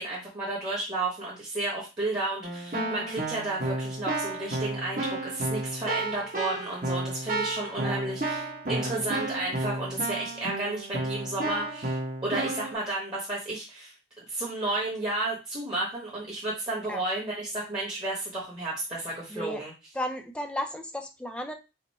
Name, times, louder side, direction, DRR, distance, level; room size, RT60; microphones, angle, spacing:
voice 1, 0.0-19.7, right 2 dB, 25° right, -5 dB, 1.2 m, -32 dB
Keyboard (musical), 2.4-12.7, right 2 dB, 45° right, 1.4 m, -32 dB
voice 2, 19.3-19.6 19.9-21.5, left 1 dB, 5° left, 5 dB, 0.4 m, -34 dB
5.2 x 2.1 x 4.1 m, 0.28 s
head